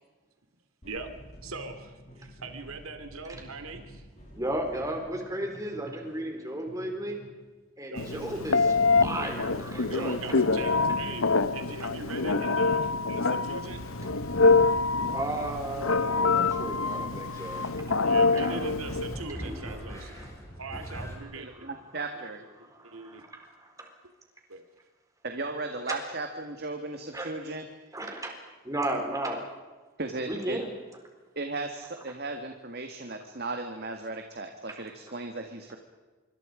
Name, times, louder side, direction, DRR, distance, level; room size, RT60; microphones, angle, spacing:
sound 1, 0.8-7.5, equal, 30° left, 7.9 m, -50 dB
voice 1, 1.4-4.0 7.9-8.3 9.7-13.8 18.0-20.3 20.6-21.5 22.6-23.2 24.5-24.6, right 3 dB, 85° right, 7 dB, 2.6 m, -41 dB
voice 2, 4.4-7.2 7.8-10.4 15.1-17.6 18.0-18.6 19.4-20.3 22.6-23.9 25.9-26.0 27.1-27.3 27.9-28.3 28.6-29.4 30.3-30.7, right 1 dB, 15° right, 3 dB, 4.0 m, -35 dB
Telephone, 8.0-19.1, left 4 dB, 80° left, 1.0 m, -25 dB
sound 2, 13.7-21.2, equal, 15° left, 4.9 m, -43 dB
voice 3, 21.3-22.4 25.2-27.6 30.0-30.6 31.3-35.8, right 2 dB, 50° right, 5 dB, 1.8 m, -36 dB
26.5 x 24.0 x 5.1 m, 1.3 s
head